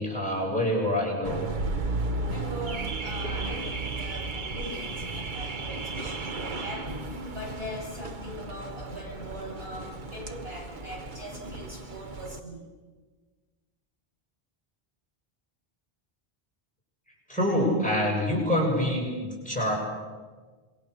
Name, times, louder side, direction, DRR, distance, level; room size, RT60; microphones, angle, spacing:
voice 1, 0.0-1.5 17.3-19.8, left 1 dB, 5° left, -2 dB, 7.3 m, -26 dB
Car / Alarm, 1.2-12.4, right 3 dB, 50° right, 1.2 m, -34 dB
voice 2, 2.2-12.6, equal, 75° right, -3 dB, 8.0 m, -41 dB
27.0 x 22.5 x 6.7 m, 1.4 s
omnidirectional pair, 1.0 m